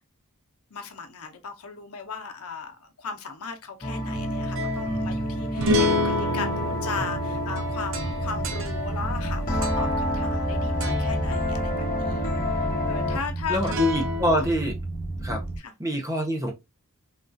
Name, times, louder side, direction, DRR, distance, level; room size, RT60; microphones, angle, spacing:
voice 1, 0.7-13.7 14.3-14.5 15.2-15.7, left 5 dB, 80° left, 0.7 m, -37 dB
sound 1, 3.8-13.3, left 1 dB, 40° left, 1.0 m, -29 dB
sound 2, 4.1-10.5 10.8-11.2 13.6-14.5, equal, 60° right, 0.6 m, -30 dB
sound 3, 7.9-15.6, right 2 dB, 30° right, 1.1 m, -33 dB
voice 2, 13.5-14.8 15.2-15.4 15.8-16.5, equal, 15° right, 0.6 m, -25 dB
3.6 x 2.3 x 2.5 m
head